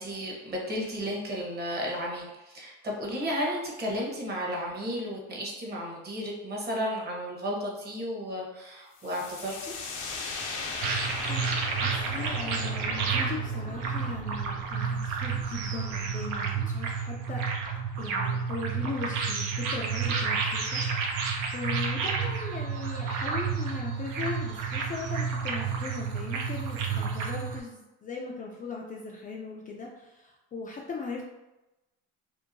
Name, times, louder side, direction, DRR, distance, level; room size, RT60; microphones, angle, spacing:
voice 1, 0.0-9.7, equal, 30° right, -2 dB, 0.9 m, -33 dB
sound 1, 9.0-16.6, left 3 dB, 75° left, 0.7 m, -39 dB
sound 2, 10.8-27.6, right 5 dB, 75° right, 0.6 m, -30 dB
voice 2, 11.3-17.5 17.7-31.2, left 4 dB, 30° left, -1 dB, 0.3 m, -39 dB
2.8 x 2.1 x 2.6 m, 0.98 s
supercardioid pair, 85°, 31 cm